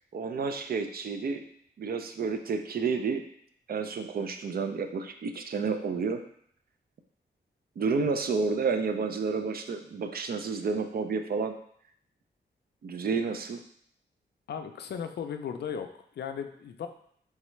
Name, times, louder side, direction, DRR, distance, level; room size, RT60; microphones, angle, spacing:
voice 1, 0.1-1.4 1.8-3.2 3.7-6.2 7.8-11.5 12.8-13.6, right 5 dB, 55° right, 7 dB, 0.4 m, -30 dB
voice 2, 14.5-15.9 16.2-16.9, left 7 dB, 65° left, 7 dB, 0.4 m, -36 dB
3.6 x 3.2 x 3.1 m, 0.65 s
wide cardioid pair, 115°, 19 cm